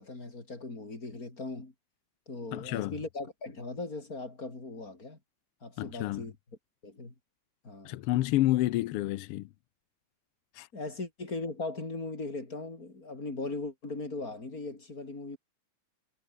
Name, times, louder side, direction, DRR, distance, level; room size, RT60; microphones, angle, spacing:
voice 1, 0.0-1.7 2.3-5.2 5.6-6.4 6.8-7.1 7.6-8.0 10.7-15.4, left 3 dB, 30° left, 5.1 m, -39 dB
voice 2, 2.5-3.0 5.8-6.3 7.8-9.5 10.6-10.7, left 16 dB, 85° left, 1.2 m, -29 dB
omnidirectional pair, 3.3 m